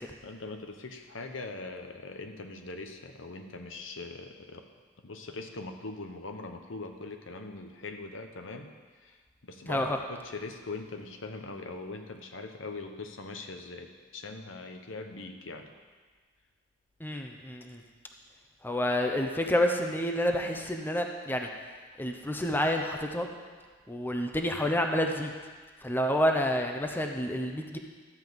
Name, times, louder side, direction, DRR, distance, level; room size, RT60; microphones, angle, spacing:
voice 1, 0.2-4.6 5.0-15.7, left 3 dB, 75° left, 5 dB, 1.0 m, -41 dB
voice 2, 9.7-10.0 17.0-17.8 18.6-21.5 22.0-23.3 23.9-25.3 25.8-27.8, left 1 dB, 10° left, 3 dB, 0.8 m, -29 dB
13.0 x 5.3 x 7.9 m, 1.5 s
head